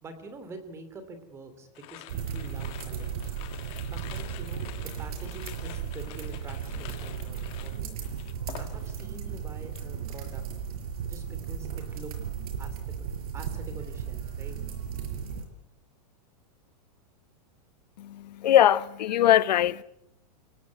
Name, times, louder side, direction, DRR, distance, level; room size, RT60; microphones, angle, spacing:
voice 1, 0.0-3.4 3.9-8.0 8.6-10.4 11.1-12.1 12.6-14.6, right 3 dB, 15° right, 2.9 m, -46 dB
sound 1, 1.7-9.2 9.4-9.9, left 14 dB, 25° left, 1.6 m, -47 dB
sound 2, 2.1-15.4, right 7 dB, 60° right, 6.4 m, -35 dB
voice 2, 18.0-19.8, left 12 dB, 80° left, 1.0 m, -21 dB
29.0 x 17.0 x 9.4 m
supercardioid pair, 175°, 21 cm